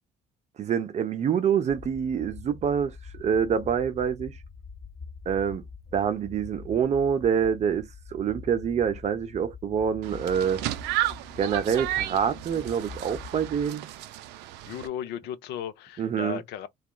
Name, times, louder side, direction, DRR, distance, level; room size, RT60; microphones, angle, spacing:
voice 1, 0.6-4.4 5.3-5.6 5.9-10.6 11.4-13.9 16.0-16.4, right 7 dB, 40° right, 0.5 m, -26 dB
sound 1, 1.7-13.7, left 5 dB, 25° left, 0.5 m, -45 dB
sound 2, 10.0-14.9, right 14 dB, 90° right, 0.4 m, -33 dB
voice 2, 14.7-16.7, left 10 dB, 80° left, 0.5 m, -35 dB
2.9 x 2.3 x 2.2 m
cardioid pair, 110°, 17 cm